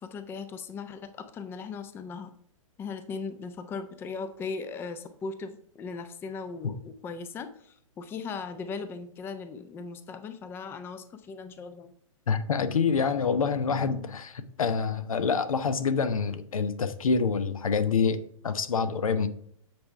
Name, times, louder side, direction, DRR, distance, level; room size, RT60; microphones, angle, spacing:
voice 1, 0.0-2.3 2.8-11.9, left 4 dB, 15° left, 10 dB, 0.4 m, -38 dB
voice 2, 12.3-19.3, left 5 dB, 85° left, 12 dB, 0.7 m, -27 dB
7.8 x 3.5 x 4.4 m, 0.66 s
hypercardioid pair, 130°, 17 cm